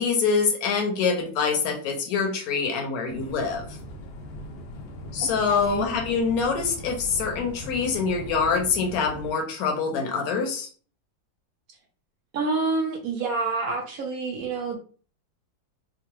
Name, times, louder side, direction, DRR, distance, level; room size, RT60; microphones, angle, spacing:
voice 1, 0.0-3.7 5.1-10.7, left 5 dB, 60° left, 2 dB, 1.1 m, -25 dB
sound 1, 3.1-9.3, equal, 80° left, 1.3 m, -39 dB
voice 2, 5.2-5.9 12.3-14.8, right 4 dB, 70° right, 2 dB, 0.8 m, -28 dB
3.7 x 2.1 x 2.9 m, 0.41 s
omnidirectional pair, 2.1 m